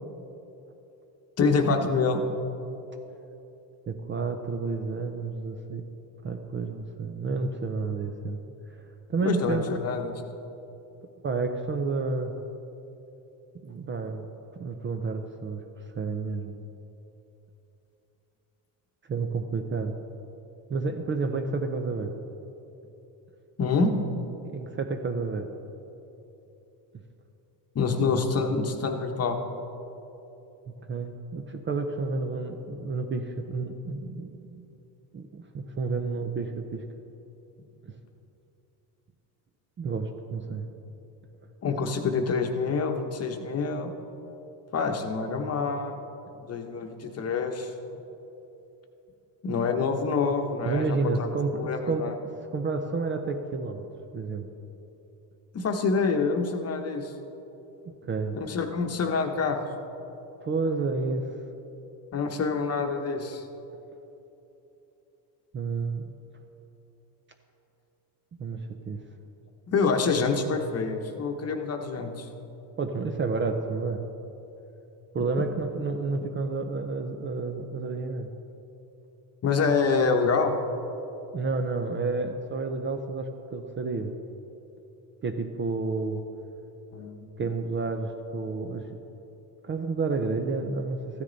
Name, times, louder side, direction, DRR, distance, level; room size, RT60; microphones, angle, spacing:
voice 1, 1.4-2.2 9.2-10.1 23.6-23.9 27.7-29.4 41.6-43.9 44.7-46.0 46.4-47.7 49.4-52.1 55.5-57.1 58.3-59.6 62.1-63.5 69.7-72.3 79.4-80.5 86.9-87.2, left 4 dB, 35° left, 4 dB, 1.0 m, -26 dB
voice 2, 3.9-5.8 6.2-8.4 9.1-9.7 11.2-12.3 13.6-14.3 14.5-15.6 15.9-16.6 19.1-19.9 20.7-22.1 24.4-25.5 30.8-34.7 35.1-36.8 37.8-37.9 39.8-40.7 50.6-52.0 52.5-53.8 54.1-54.5 58.1-58.4 60.4-61.3 65.5-66.0 68.4-69.0 72.8-74.0 75.1-78.3 81.3-84.1 85.2-86.2 87.4-89.0 89.6-91.2, right 4 dB, 25° right, 5 dB, 0.6 m, -30 dB
14.5 x 9.7 x 4.0 m, 3.0 s
cardioid pair, 120°, 45 cm